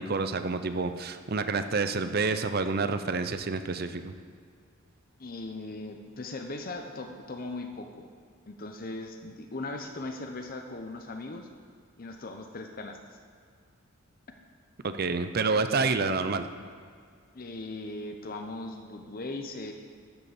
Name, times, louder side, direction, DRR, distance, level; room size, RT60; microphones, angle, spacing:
voice 1, 0.0-4.1 14.8-16.5, right 4 dB, 45° right, 10 dB, 0.6 m, -28 dB
voice 2, 5.2-8.1 8.5-11.5 12.0-13.2 17.3-19.7, left 2 dB, 45° left, 4 dB, 0.8 m, -39 dB
12.5 x 6.8 x 7.1 m, 2.1 s
head